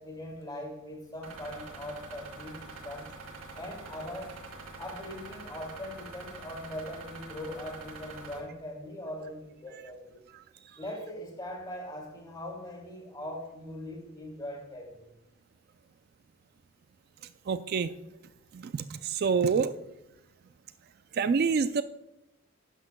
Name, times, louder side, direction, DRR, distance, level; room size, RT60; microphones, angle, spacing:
voice 1, 0.0-3.1 3.5-4.4 4.8-10.2 10.8-15.1, left 1 dB, 20° left, 2.4 m, -41 dB
sound 1, 1.2-8.4, right 3 dB, 85° right, 3.3 m, -45 dB
voice 2, 17.5-17.9 18.5-19.7 21.2-21.8, right 5 dB, 50° right, 0.3 m, -27 dB
12.0 x 9.9 x 2.2 m
head